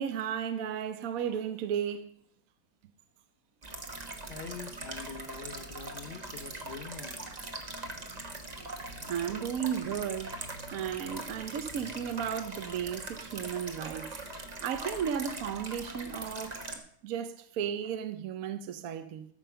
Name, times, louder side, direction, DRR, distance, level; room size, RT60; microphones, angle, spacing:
voice 1, 0.0-2.1 9.1-10.4 10.7-16.6 17.0-19.3, right 8 dB, 65° right, 1.1 m, -34 dB
sound 1, 3.6-16.8, right 2 dB, 25° right, 1.3 m, -41 dB
voice 2, 4.1-7.2, left 5 dB, 50° left, 0.8 m, -44 dB
13.5 x 5.7 x 6.7 m
omnidirectional pair, 1.7 m